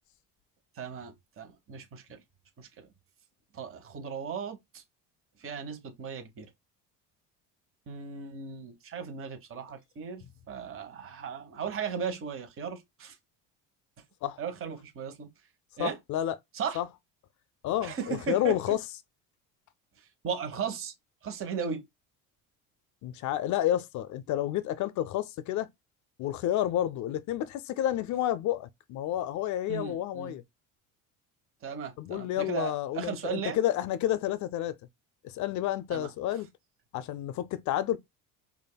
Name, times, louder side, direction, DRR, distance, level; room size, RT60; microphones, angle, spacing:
voice 1, 0.8-2.2 2.6-2.9 3.5-4.8 5.4-6.5 7.9-13.1 14.4-15.3 15.8-16.0 16.5-16.8 17.8-18.5 20.2-20.9 21.2-21.8 29.7-30.3 31.6-33.6 35.9-36.1, right 6 dB, 35° right, 1.1 m, -36 dB
voice 2, 15.8-16.4 16.8-16.9 17.6-18.8 23.0-25.7 26.2-30.4 32.0-34.7 35.2-36.5 36.9-38.0, left 12 dB, 55° left, 0.5 m, -30 dB
5.0 x 2.5 x 2.2 m
cardioid pair, 110°, 36 cm